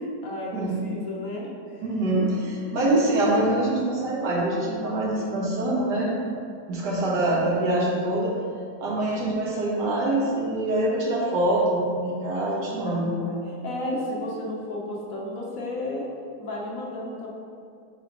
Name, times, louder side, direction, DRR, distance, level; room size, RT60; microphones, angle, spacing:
voice 1, 0.2-1.8 12.8-13.4 13.6-16.0 16.4-17.3, left 1 dB, 60° left, -3 dB, 1.3 m, -33 dB
voice 2, 1.8-6.1 6.7-8.3 8.8-13.1, right 1 dB, 90° right, -4 dB, 1.9 m, -24 dB
7.4 x 5.1 x 3.0 m, 2.3 s
omnidirectional pair, 1.8 m